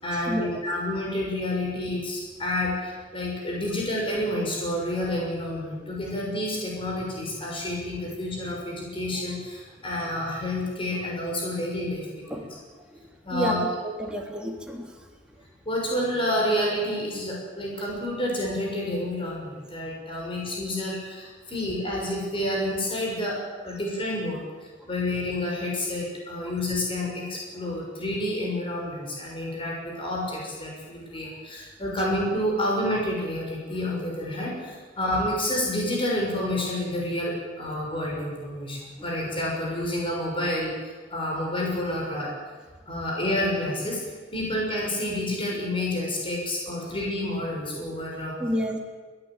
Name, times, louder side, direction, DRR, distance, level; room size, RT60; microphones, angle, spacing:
voice 1, 0.0-12.1 12.3-12.4 13.2-13.6 14.0-14.1 15.6-23.4 23.6-24.5 24.9-42.3 42.9-44.0 44.3-48.3, left 1 dB, 30° left, -2 dB, 6.8 m, -29 dB
voice 2, 13.3-14.9 48.4-48.8, equal, 5° right, 0 dB, 3.3 m, -29 dB
23.0 x 17.5 x 9.1 m, 1.4 s
head